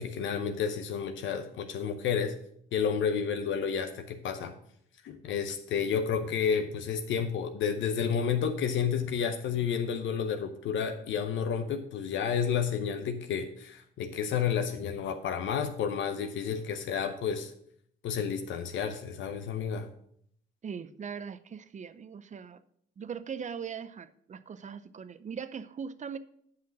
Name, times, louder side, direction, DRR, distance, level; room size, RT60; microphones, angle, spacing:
voice 1, 0.0-2.3 2.7-4.5 5.0-17.5 18.0-19.9, left 7 dB, 75° left, 5 dB, 0.8 m, -31 dB
voice 2, 20.6-22.6 23.0-26.2, right 6 dB, 40° right, 14 dB, 0.6 m, -40 dB
7.6 x 5.8 x 5.9 m, 0.68 s
cardioid pair, 90°, 20 cm